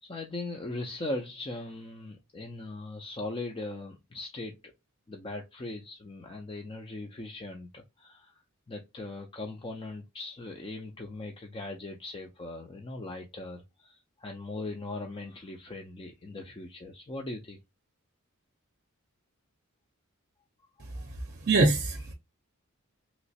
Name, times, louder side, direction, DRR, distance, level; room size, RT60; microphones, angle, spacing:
voice 1, 0.0-4.7 5.1-8.4 8.7-17.6, left 2 dB, 25° left, 0.5 m, -39 dB
voice 2, 20.8-22.1, right 3 dB, 50° right, 0.6 m, -26 dB
3.1 x 2.9 x 2.7 m
head